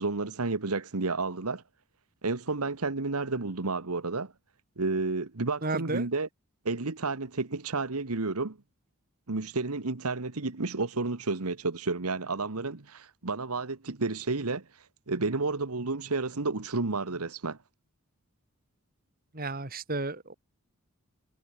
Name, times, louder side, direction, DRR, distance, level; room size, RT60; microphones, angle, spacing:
voice 1, 0.0-1.6 2.2-4.3 4.8-6.3 6.6-8.6 9.3-14.6 15.1-17.6, right 3 dB, 90° right, 1.4 m, -31 dB
voice 2, 5.6-6.1 19.3-20.3, right 2 dB, 40° right, 2.9 m, -32 dB
head